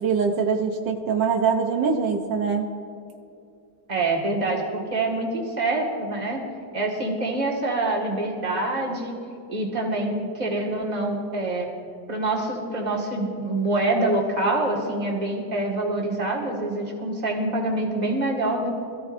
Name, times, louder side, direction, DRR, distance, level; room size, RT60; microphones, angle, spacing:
voice 1, 0.0-2.7, right 5 dB, 80° right, 3 dB, 1.6 m, -23 dB
voice 2, 3.9-6.4 6.7-9.1 9.5-11.7 12.1-18.8, right 2 dB, 25° right, -2 dB, 2.0 m, -25 dB
22.0 x 14.0 x 2.6 m, 2.5 s
omnidirectional pair, 1.9 m